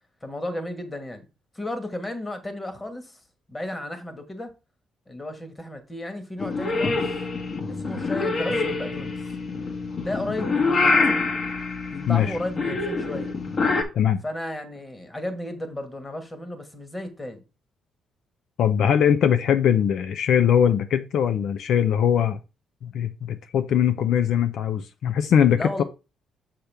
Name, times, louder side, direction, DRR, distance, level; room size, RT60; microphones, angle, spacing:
voice 1, 0.2-1.2 1.5-3.2 3.5-4.5 5.1-7.2 7.7-9.1 10.0-11.3 12.1-13.3 14.2-17.4 25.6-25.8, left 1 dB, 20° left, 1.5 m, -34 dB
Purr / Meow, 6.4-13.8, left 3 dB, 45° left, 1.4 m, -25 dB
voice 2, 12.1-12.4 13.9-14.2 18.6-22.4 22.8-25.8, left 9 dB, 70° left, 0.5 m, -21 dB
6.7 x 5.8 x 3.4 m
cardioid pair, 90°, 0 cm